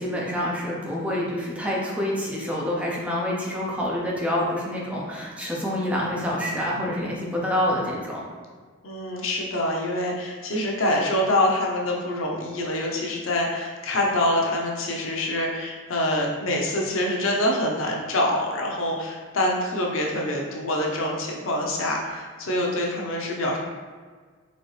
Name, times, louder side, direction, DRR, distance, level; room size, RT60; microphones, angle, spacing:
voice 1, 0.0-8.2, left 1 dB, 5° right, -4 dB, 0.6 m, -27 dB
voice 2, 8.8-23.6, left 1 dB, 85° left, -1 dB, 0.7 m, -25 dB
4.1 x 2.7 x 3.2 m, 1.6 s
head